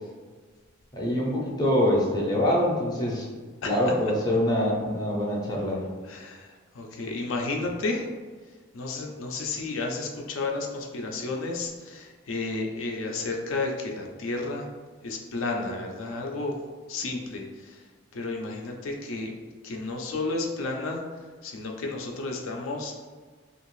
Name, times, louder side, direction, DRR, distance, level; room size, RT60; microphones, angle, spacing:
voice 1, 0.9-3.3 3.6-5.8, left 1 dB, 20° left, -3 dB, 0.5 m, -24 dB
voice 2, 6.0-8.1 8.7-14.7 15.0-16.6 16.9-17.9 18.1-19.3 19.6-23.1, left 3 dB, 80° left, 1 dB, 0.4 m, -32 dB
2.6 x 2.4 x 3.0 m, 1.4 s
head